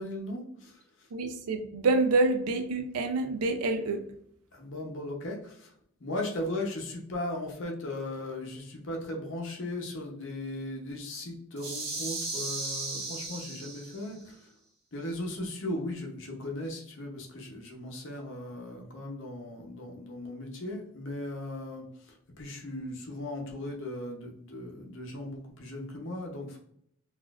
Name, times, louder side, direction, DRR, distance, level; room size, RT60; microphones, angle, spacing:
voice 1, 0.0-1.1 4.5-5.7 6.0-14.5 14.9-26.6, left 1 dB, 55° left, 0.7 m, -37 dB
voice 2, 1.1-4.1, right 3 dB, 90° right, 0.5 m, -27 dB
sound 1, 11.6-14.1, right 3 dB, 45° right, 1.0 m, -36 dB
4.1 x 2.5 x 2.4 m
head